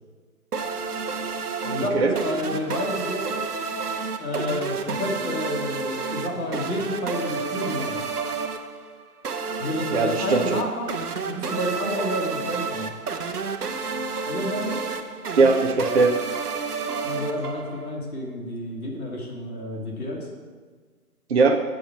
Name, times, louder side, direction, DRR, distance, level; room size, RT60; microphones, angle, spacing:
sound 1, 0.5-18.0, right 5 dB, 80° right, 0.9 m, -30 dB
voice 1, 1.6-3.3 4.2-8.1 9.6-10.9 11.2-12.9 14.3-14.8 17.0-20.3, left 1 dB, 70° left, -1 dB, 2.3 m, -30 dB
voice 2, 9.9-10.6 15.4-16.1 21.3-21.6, right 4 dB, 45° right, 3 dB, 0.6 m, -19 dB
7.6 x 5.2 x 6.0 m, 1.5 s
figure-of-eight pair, 145°, 45 cm